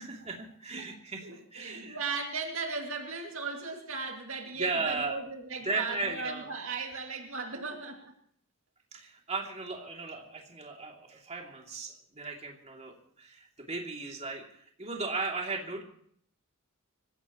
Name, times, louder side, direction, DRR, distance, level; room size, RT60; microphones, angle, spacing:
voice 1, 0.0-2.0 4.5-5.2 5.6-6.5 8.9-15.8, right 3 dB, 30° right, 0 dB, 2.7 m, -36 dB
voice 2, 1.2-8.1, right 4 dB, 65° right, 2 dB, 2.3 m, -37 dB
26.0 x 15.5 x 3.0 m, 0.63 s
head